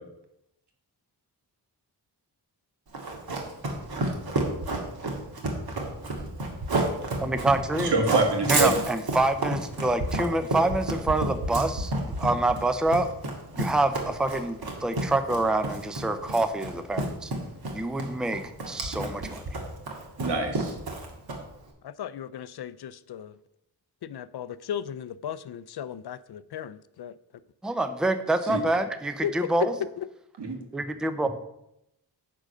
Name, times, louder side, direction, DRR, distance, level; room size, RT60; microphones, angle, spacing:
Run, 2.9-21.6, right 2 dB, 60° right, 1.8 m, -30 dB
voice 1, 7.2-7.9 8.5-13.1 13.6-17.3 17.7-19.4 27.6-29.7 30.7-31.3, right 2 dB, ahead, 9 dB, 0.5 m, -26 dB
voice 2, 7.8-8.7 20.2-20.7 28.5-28.6 30.4-30.6, right 3 dB, 85° right, 3 dB, 1.9 m, -25 dB
voice 3, 21.8-23.3 24.0-26.2 26.5-26.7 27.0-27.1 29.2-29.7, left 9 dB, 70° left, 16 dB, 0.5 m, -34 dB
9.8 x 3.9 x 6.5 m, 0.82 s
wide cardioid pair, 145°, 40 cm